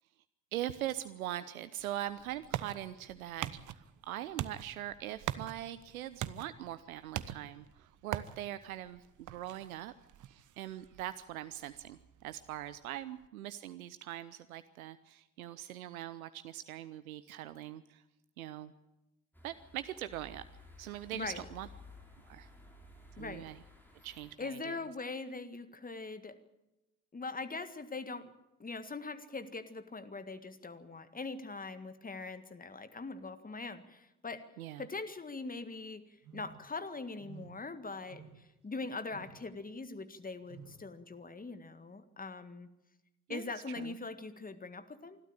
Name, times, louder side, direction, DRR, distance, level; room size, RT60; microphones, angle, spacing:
voice 1, 0.5-9.9 10.3-18.0 18.4-18.7 19.4-20.4 20.8-21.7 22.2-22.5 23.2-23.6 24.0-24.8 34.6-34.9 43.3-43.4 43.8-44.0, right 13 dB, 80° right, 13 dB, 0.7 m, -42 dB
sound 1, 1.8-13.3, right 11 dB, 45° right, 1.1 m, -44 dB
sound 2, 19.3-24.3, left 2 dB, 5° left, 6.1 m, -55 dB
voice 2, 21.1-21.4 23.2-23.5 24.4-26.3 27.1-28.3 28.6-34.4 34.8-36.0 36.3-42.7 43.3-45.2, left 3 dB, 20° left, 11 dB, 1.8 m, -42 dB
sound 3, 36.2-36.7 37.2-37.7 38.1-38.6 39.1-39.5 40.4-40.9, right 6 dB, 60° right, 4.8 m, -53 dB
25.5 x 12.5 x 8.9 m, 0.96 s
figure-of-eight pair, 50°, 41 cm